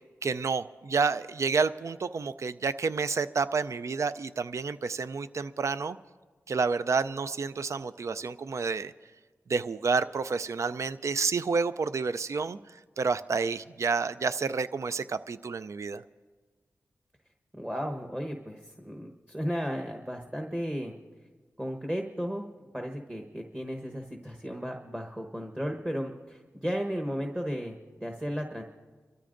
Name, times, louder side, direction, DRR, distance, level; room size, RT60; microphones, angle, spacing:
voice 1, 0.2-6.0 6.5-8.9 9.5-16.0, right 4 dB, 60° right, 13 dB, 0.4 m, -29 dB
voice 2, 17.5-20.9 21.6-22.4 22.7-28.6, equal, 10° right, 3 dB, 1.1 m, -34 dB
29.0 x 13.5 x 2.6 m, 1.4 s
cardioid pair, 55°, 6 cm